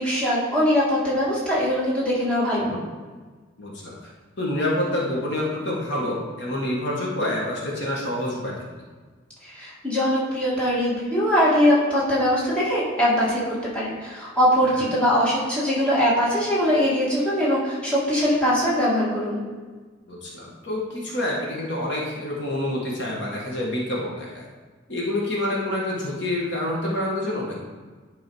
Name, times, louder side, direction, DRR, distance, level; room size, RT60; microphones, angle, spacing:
voice 1, 0.0-2.6 9.4-19.4, equal, 5° left, -8 dB, 1.8 m, -22 dB
voice 2, 3.6-4.1 4.4-8.6 14.6-14.9 20.1-24.4 24.9-27.6, left 1 dB, 60° left, -3 dB, 1.5 m, -27 dB
10.5 x 3.8 x 4.7 m, 1.4 s
head